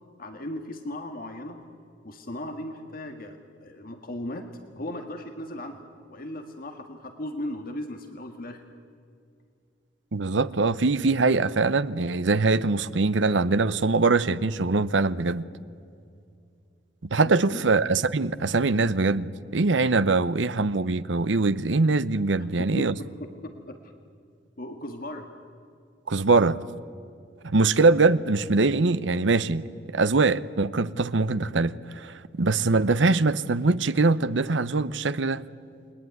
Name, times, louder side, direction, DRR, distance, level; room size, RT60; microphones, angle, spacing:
voice 1, 0.2-1.6 2.0-8.6 17.2-17.6 22.8-22.9 23.4-23.8 24.6-25.3, left 1 dB, 55° left, 1.8 m, -37 dB
voice 2, 10.1-15.4 17.1-22.9 26.1-26.6 27.4-29.6 29.9-35.4, right 3 dB, 85° right, 0.8 m, -23 dB
28.5 x 21.0 x 9.5 m
head